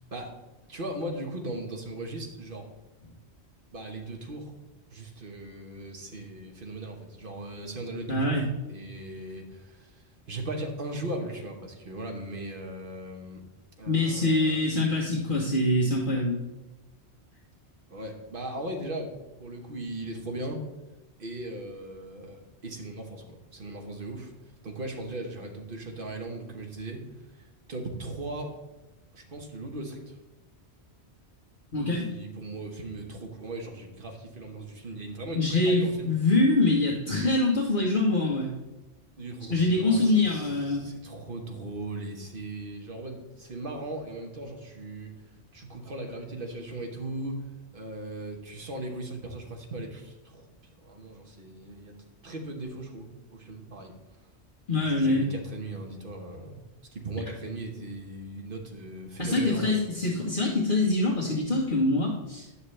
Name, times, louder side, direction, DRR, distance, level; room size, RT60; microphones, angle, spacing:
voice 1, 0.7-2.7 3.7-4.5 4.9-13.4 13.8-14.6 17.9-19.1 19.4-20.6 21.2-24.3 24.6-27.0 27.4-28.5 29.1-30.2 32.1-36.1 39.2-45.2 45.5-50.5 50.8-52.0 52.2-53.9 54.7-56.6 56.9-59.8, right 1 dB, 55° right, 2 dB, 1.4 m, -38 dB
voice 2, 8.1-8.5 13.9-16.4 31.7-32.1 35.3-38.5 39.5-40.9 54.7-55.3 59.2-62.5, left 2 dB, 50° left, -5 dB, 1.3 m, -24 dB
9.7 x 6.5 x 3.3 m, 1.1 s
omnidirectional pair, 1.1 m